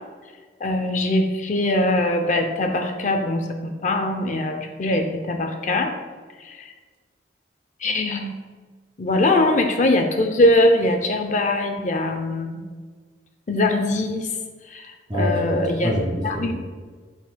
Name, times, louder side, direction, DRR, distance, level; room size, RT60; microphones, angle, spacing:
voice 1, 0.6-5.9 6.4-6.7 7.8-8.4 9.0-12.6 13.5-14.3 14.7-14.9 15.1-15.9 16.2-16.5, left 1 dB, 45° left, 5 dB, 0.5 m, -22 dB
voice 2, 15.1-16.5, equal, 25° right, -3 dB, 1.6 m, -24 dB
12.5 x 4.2 x 2.2 m, 1.5 s
head